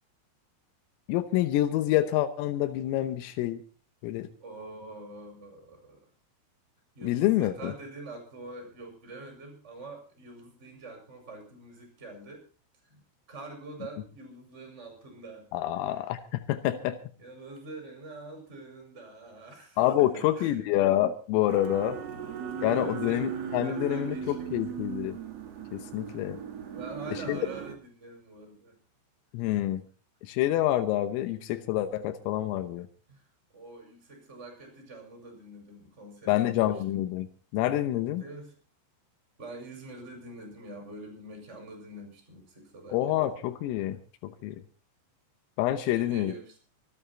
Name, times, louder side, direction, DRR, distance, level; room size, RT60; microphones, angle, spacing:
voice 1, 1.1-3.6 4.0-4.3 7.0-7.7 15.5-17.0 19.8-22.0 22.6-25.2 25.7-26.4 27.3-27.4 29.3-29.8 30.2-32.9 36.3-38.2 42.9-44.0 44.2-44.6 45.6-46.3, left 13 dB, 85° left, 8 dB, 3.7 m, -27 dB
voice 2, 4.4-6.0 6.9-12.4 12.8-13.0 13.3-15.5 17.2-20.7 22.1-22.2 22.5-25.1 26.7-28.8 33.1-33.2 33.5-37.0 38.2-38.5 39.4-43.4 45.8-46.6, right 2 dB, 15° right, 3 dB, 5.3 m, -45 dB
sound 1, 21.5-27.8, right 7 dB, 55° right, 1.9 m, -37 dB
25.5 x 9.3 x 4.3 m, 0.36 s
omnidirectional pair, 5.9 m